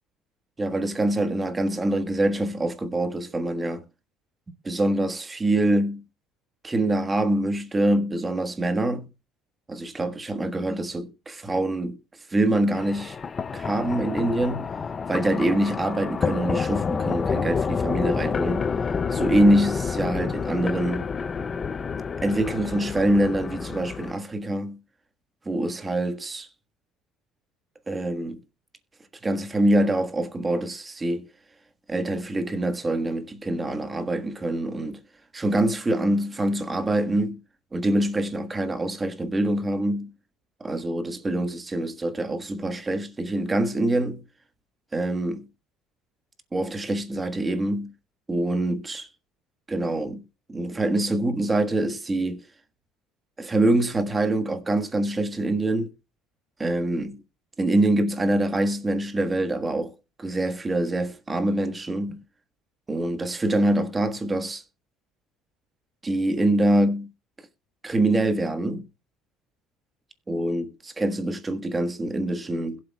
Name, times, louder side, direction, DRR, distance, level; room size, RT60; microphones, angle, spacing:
voice 1, 0.6-3.8 4.6-6.0 6.6-9.1 9.7-12.0 12.3-13.2 13.5-14.7 15.1-18.7 19.1-21.1 22.2-24.8 25.4-26.5 27.9-28.4 29.2-31.3 31.9-35.0 35.3-37.4 37.7-40.1 40.6-44.2 44.9-45.5 46.5-47.9 48.3-49.1 49.7-50.2 50.5-52.4 53.4-55.9 56.6-57.2 57.6-59.9 60.2-62.2 62.9-64.6 66.0-67.1 67.8-68.9 70.3-70.7 71.0-72.8, right 1 dB, 15° right, 1.4 m, -25 dB
sound 1, 12.7-24.1, left 5 dB, 25° left, 0.4 m, -29 dB
21.0 x 7.7 x 2.3 m
cardioid pair, 140°, 0 cm